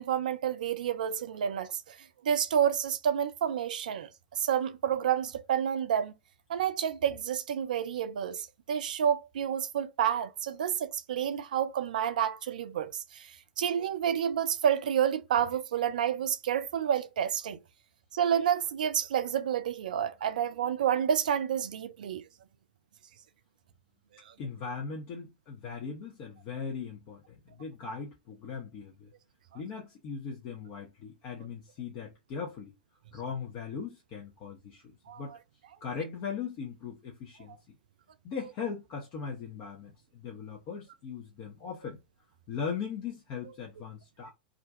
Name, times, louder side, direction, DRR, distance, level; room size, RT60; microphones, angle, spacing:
voice 1, 0.0-2.0 2.2-6.1 6.5-17.6 18.1-22.2 24.3-24.4 35.1-35.2, right 9 dB, 60° right, 0.4 m, -29 dB
voice 2, 24.4-29.1 29.5-32.7 33.1-34.9 35.2-35.3 35.8-37.6 38.2-42.0 42.5-44.3, left 6 dB, 35° left, 0.7 m, -39 dB
2.5 x 2.2 x 2.6 m
figure-of-eight pair, 95°, 5 cm